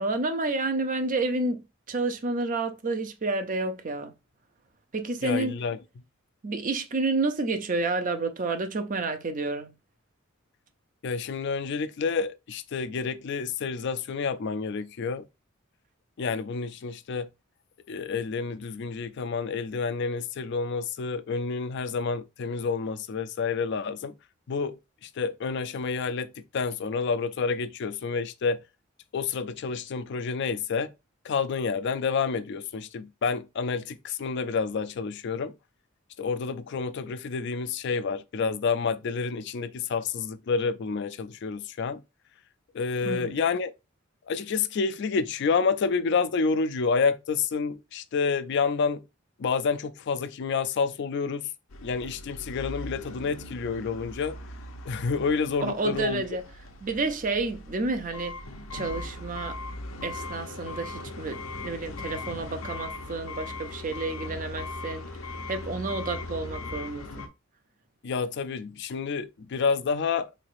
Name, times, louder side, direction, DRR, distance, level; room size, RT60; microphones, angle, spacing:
voice 1, 0.0-4.1 4.9-5.6 6.4-9.7 43.0-43.4 55.6-56.4 56.8-58.4 58.7-59.6 60.0-65.0 65.5-67.3, right 3 dB, 40° right, 0.6 m, -30 dB
voice 2, 5.2-5.8 11.0-15.2 16.2-17.3 17.9-24.1 24.5-24.8 25.0-28.6 29.1-30.9 31.2-35.5 36.2-42.0 42.7-43.7 44.3-49.0 49.4-51.4 51.8-54.4 54.9-56.2 68.0-70.3, left 5 dB, 55° left, 0.4 m, -29 dB
sound 1, 51.7-67.3, left 2 dB, 80° left, 0.8 m, -39 dB
3.8 x 3.2 x 2.5 m
head